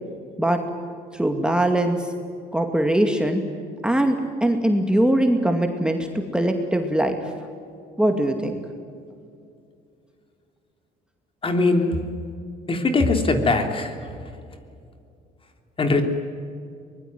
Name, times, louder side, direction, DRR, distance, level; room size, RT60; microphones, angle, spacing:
voice 1, 1.1-2.0 2.5-3.4 3.8-4.2 4.4-6.1 6.3-7.1 8.0-8.6, right 1 dB, 5° right, 4 dB, 2.3 m, -21 dB
voice 2, 11.4-11.9 12.7-13.9 15.8-16.0, left 3 dB, 30° left, 6 dB, 3.1 m, -20 dB
23.5 x 21.0 x 9.6 m, 2.4 s
cardioid pair, 110°, 17 cm